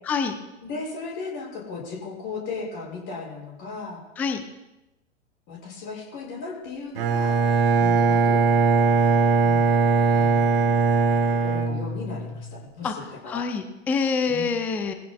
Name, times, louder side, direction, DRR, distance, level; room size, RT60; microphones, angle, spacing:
voice 1, 0.1-0.4 4.2-4.4 12.8-13.0 13.3-14.9, left 5 dB, 5° left, 8 dB, 0.4 m, -26 dB
voice 2, 0.6-4.0 5.5-7.4 7.8-8.4 9.4-9.7 10.1-10.8 11.3-13.5 14.3-14.5, left 4 dB, 30° left, -3 dB, 6.2 m, -36 dB
Bowed string instrument, 7.0-12.4, right 4 dB, 50° right, 1.9 m, -20 dB
21.5 x 15.0 x 2.3 m, 0.96 s
figure-of-eight pair, 110°, 37 cm